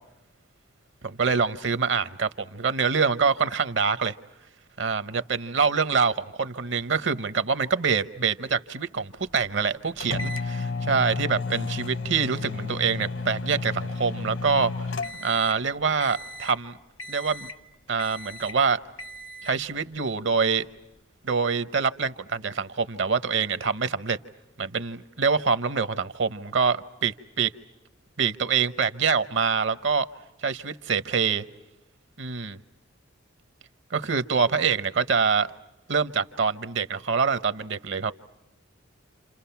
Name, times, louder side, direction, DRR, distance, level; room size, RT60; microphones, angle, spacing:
voice 1, 1.0-4.1 4.8-14.7 15.2-16.8 17.1-17.5 17.9-18.8 19.4-20.7 21.2-24.2 24.6-27.5 28.2-30.1 30.4-31.4 32.2-32.6 33.9-35.5 35.9-38.1, right 5 dB, 65° right, 0.9 m, -25 dB
sound 1, 10.0-15.7 16.0-16.6 17.0-17.6 18.0-18.6 19.0-19.6, left 3 dB, 70° left, 1.0 m, -33 dB
29.0 x 27.5 x 5.8 m
head